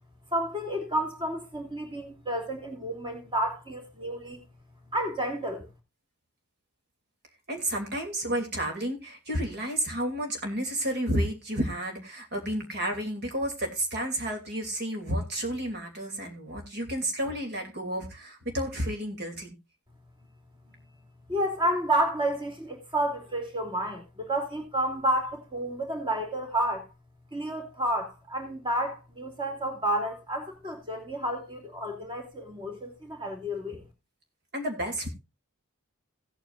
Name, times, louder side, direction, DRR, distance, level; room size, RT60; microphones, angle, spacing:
voice 1, 0.3-4.4 4.9-5.7 21.3-26.9 27.3-33.8, right 1 dB, 20° right, 2.9 m, -30 dB
voice 2, 7.5-19.5 34.5-35.1, right 1 dB, 50° right, 2.8 m, -31 dB
17.5 x 9.0 x 2.5 m
head